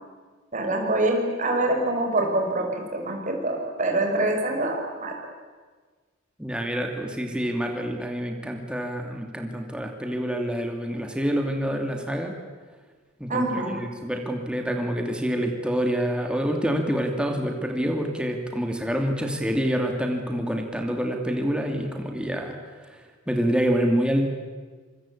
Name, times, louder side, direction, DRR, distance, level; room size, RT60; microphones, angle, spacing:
voice 1, 0.5-5.1 13.3-13.8, right 2 dB, 40° right, 2 dB, 5.4 m, -25 dB
voice 2, 6.4-12.4 13.2-24.3, equal, 5° right, 3 dB, 2.5 m, -27 dB
26.5 x 22.0 x 8.6 m, 1.4 s
head